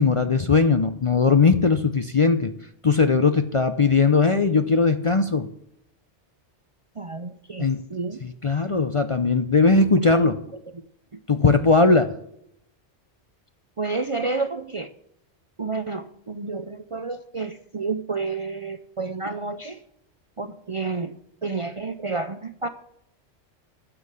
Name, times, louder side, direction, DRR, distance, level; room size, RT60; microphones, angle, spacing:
voice 1, 0.0-2.5 2.8-5.5 7.6-7.8 8.2-10.4 11.3-12.1, left 4 dB, 40° left, 9 dB, 0.5 m, -19 dB
voice 2, 7.0-8.2 10.2-10.3 11.1-11.2 13.8-14.9 15.6-19.8 20.4-21.1 21.4-22.7, right 3 dB, 40° right, 10 dB, 0.5 m, -30 dB
10.0 x 7.5 x 8.1 m, 0.76 s
omnidirectional pair, 1.2 m